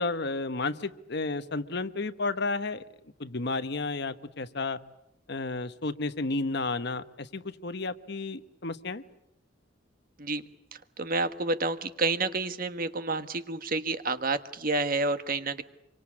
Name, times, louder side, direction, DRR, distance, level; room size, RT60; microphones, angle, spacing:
voice 1, 0.0-2.8 3.2-4.8 5.3-9.0, left 3 dB, 60° left, 11 dB, 1.2 m, -32 dB
voice 2, 11.0-15.6, right 3 dB, 45° right, 10 dB, 1.5 m, -29 dB
26.5 x 24.5 x 8.6 m, 0.83 s
head